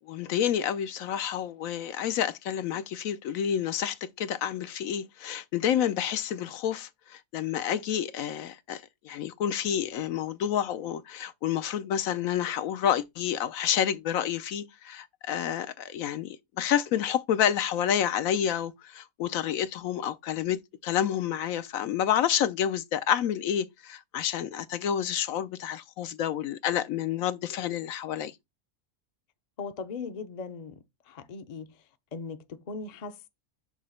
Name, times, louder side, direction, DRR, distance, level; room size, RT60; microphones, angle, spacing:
voice 1, 0.1-28.3, left 9 dB, 80° left, 1.0 m, -29 dB
voice 2, 29.6-31.8 32.1-33.3, left 4 dB, 45° left, 0.6 m, -39 dB
6.3 x 2.8 x 5.5 m
omnidirectional pair, 1.5 m